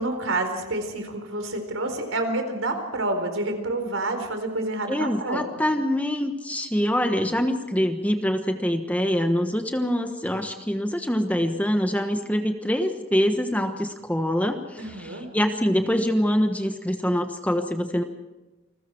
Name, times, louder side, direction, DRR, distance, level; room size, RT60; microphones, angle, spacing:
voice 1, 0.0-5.4 14.8-15.3, right 2 dB, 75° right, 6 dB, 4.2 m, -28 dB
voice 2, 4.9-18.0, equal, 5° left, 6 dB, 1.2 m, -25 dB
29.0 x 21.0 x 4.6 m, 1.1 s
head